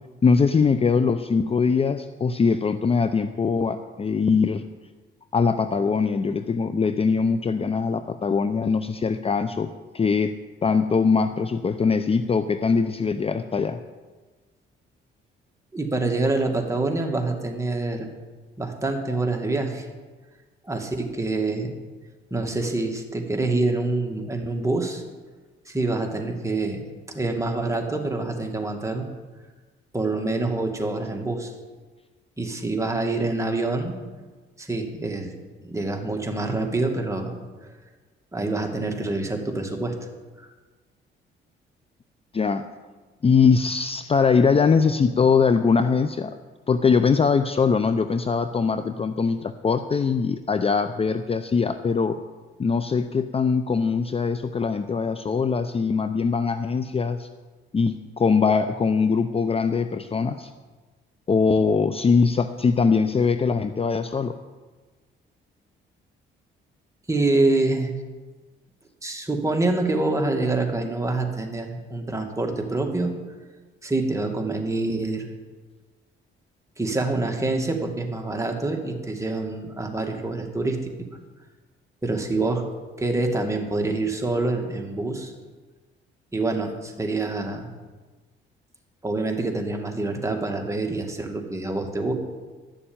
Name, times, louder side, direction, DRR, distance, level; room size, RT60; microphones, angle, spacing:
voice 1, 0.2-4.6 5.3-10.3 10.6-13.8 42.3-42.7 43.2-46.3 46.7-52.2 52.6-57.3 57.7-60.5 61.3-64.4, left 5 dB, 30° left, 10 dB, 0.6 m, -22 dB
voice 2, 15.7-18.1 18.6-19.9 20.6-21.7 22.3-25.0 25.7-26.8 27.1-29.1 29.9-31.5 32.4-34.0 34.6-35.3 35.6-37.4 37.6-37.7 38.3-40.0 40.4-40.5 67.1-67.9 69.0-73.1 73.8-75.3 76.8-80.8 82.0-82.6 83.0-85.3 86.3-87.7 89.0-92.1, right 2 dB, 15° right, 2 dB, 2.2 m, -26 dB
12.5 x 7.0 x 8.8 m, 1.3 s
cardioid pair, 90°, 20 cm